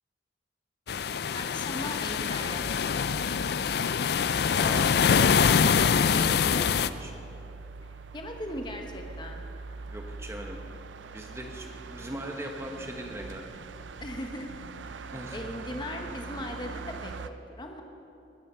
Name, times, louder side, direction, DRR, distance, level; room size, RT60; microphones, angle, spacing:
sound 1, 0.9-6.9, left 6 dB, 60° left, 0.4 m, -24 dB
voice 1, 1.3-2.9 8.1-9.5 14.0-14.5 14.8-17.8, left 1 dB, 25° left, 3 dB, 1.0 m, -38 dB
sound 2, 1.3-17.3, right 4 dB, 80° right, 0.5 m, -43 dB
voice 2, 4.6-4.9 5.2-5.4 6.1-7.1 9.9-10.6 11.1-13.4 15.1-15.4, right 1 dB, 15° right, 2 dB, 1.3 m, -39 dB
20.5 x 9.3 x 5.6 m, 2.8 s
head